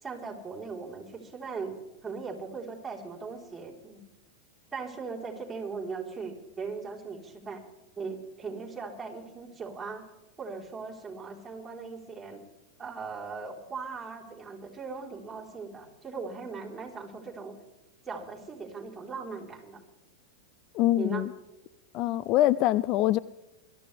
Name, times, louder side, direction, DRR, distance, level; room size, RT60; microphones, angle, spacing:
voice 1, 0.0-4.0 4.7-7.6 8.0-10.1 10.4-12.4 12.8-17.6 18.1-19.8 21.0-21.3, right 4 dB, 15° right, -3 dB, 4.0 m, -39 dB
voice 2, 20.7-21.3 21.9-23.2, left 14 dB, 45° left, 19 dB, 0.4 m, -24 dB
22.5 x 13.0 x 3.4 m, 1.1 s
hypercardioid pair, 100°, 0 cm